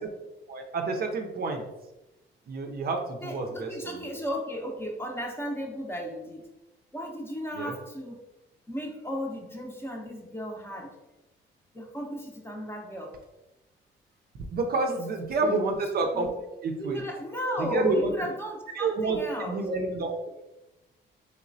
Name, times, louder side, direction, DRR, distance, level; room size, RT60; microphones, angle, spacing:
voice 1, 0.5-1.6 2.5-4.0 7.6-7.7 14.5-16.3 16.6-17.0 17.6-18.1 18.8-20.1, right 3 dB, 50° right, 3 dB, 0.5 m, -29 dB
voice 2, 3.2-6.5 6.9-8.2 8.7-10.9 11.7-13.2 14.9-15.0 15.4-15.8 16.1-16.3 16.8-19.6, equal, 10° left, 0 dB, 0.7 m, -35 dB
3.2 x 3.0 x 2.6 m, 0.99 s
cardioid pair, 90°, 20 cm